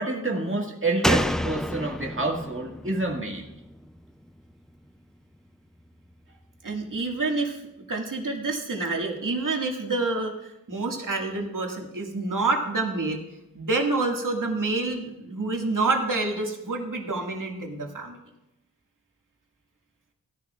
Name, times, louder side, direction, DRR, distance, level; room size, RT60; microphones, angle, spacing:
voice 1, 0.0-3.5, right 2 dB, 35° right, 0 dB, 2.0 m, -28 dB
Slam, 1.0-4.5 4.8-4.9, equal, ahead, 0.3 m, -29 dB
voice 2, 6.6-7.6 7.9-10.3 10.7-13.2 13.5-18.2, right 3 dB, 55° right, 1 dB, 2.0 m, -27 dB
15.5 x 10.5 x 2.4 m, 0.93 s
cardioid pair, 45°, 37 cm